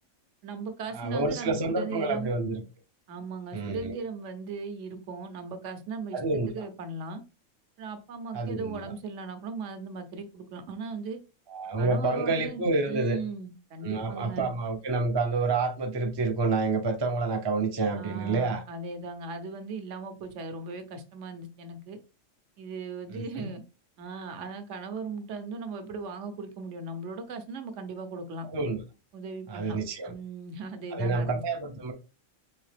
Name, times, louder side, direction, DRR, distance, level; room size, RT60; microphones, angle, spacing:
voice 1, 0.4-2.3 3.1-6.2 6.5-7.2 7.8-11.2 11.8-12.6 12.9-14.5 18.0-22.0 22.6-23.6 24.0-28.5 29.1-29.8 30.1-31.4, right 4 dB, 75° right, 1.0 m, -38 dB
voice 2, 0.9-2.6 3.5-4.0 6.1-6.7 8.3-8.9 11.5-13.2 13.8-18.6 23.1-23.5 28.5-28.8 29.5-30.1 30.9-31.9, right 3 dB, 40° right, 0.3 m, -28 dB
3.8 x 2.8 x 3.2 m
omnidirectional pair, 1.3 m